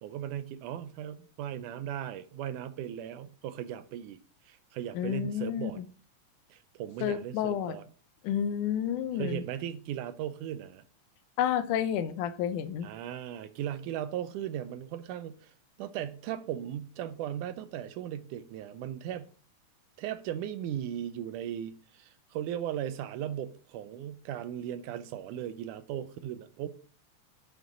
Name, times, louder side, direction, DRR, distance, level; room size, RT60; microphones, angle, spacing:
voice 1, 0.0-4.2 4.5-5.8 6.5-7.8 9.1-10.8 12.8-19.3 20.0-26.7, right 10 dB, 85° right, 2.1 m, -37 dB
voice 2, 5.0-5.9 7.0-7.8 8.2-9.4 11.4-12.9, left 9 dB, 80° left, 2.1 m, -30 dB
9.0 x 5.1 x 3.9 m
omnidirectional pair, 3.6 m